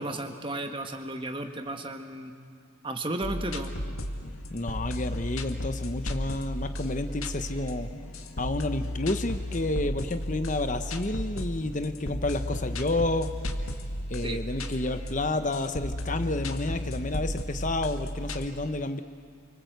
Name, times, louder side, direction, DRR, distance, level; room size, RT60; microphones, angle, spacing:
voice 1, 0.0-2.3 2.8-3.7 14.2-14.4, right 1 dB, 25° right, 5 dB, 1.7 m, -34 dB
sound 1, 3.2-18.5, left 1 dB, 85° left, 2.0 m, -34 dB
voice 2, 4.5-7.9 8.4-13.3 14.1-19.0, left 2 dB, 35° left, 9 dB, 0.9 m, -30 dB
29.5 x 25.0 x 8.1 m, 2.2 s
head